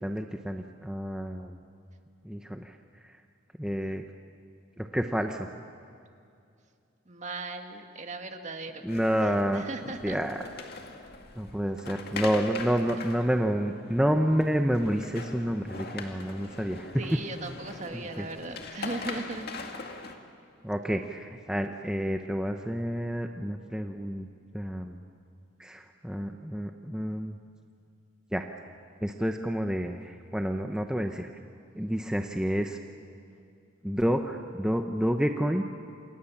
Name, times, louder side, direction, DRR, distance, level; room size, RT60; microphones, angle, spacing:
voice 1, 0.0-1.6 2.2-2.7 3.0-3.1 3.6-4.0 4.8-5.5 8.8-9.6 10.0-10.4 11.4-17.1 17.9-18.0 20.6-24.3 24.5-25.0 25.6-27.4 28.3-28.5 29.0-31.3 31.8-32.8 33.8-35.6, equal, 5° right, 4 dB, 0.9 m, -29 dB
voice 2, 7.1-8.8 9.2-10.2 17.0-19.5, right 2 dB, 40° right, 5 dB, 1.8 m, -38 dB
sound 1, 8.9-20.2, left 3 dB, 55° left, 2.1 m, -42 dB
29.0 x 27.0 x 7.3 m, 2.5 s
head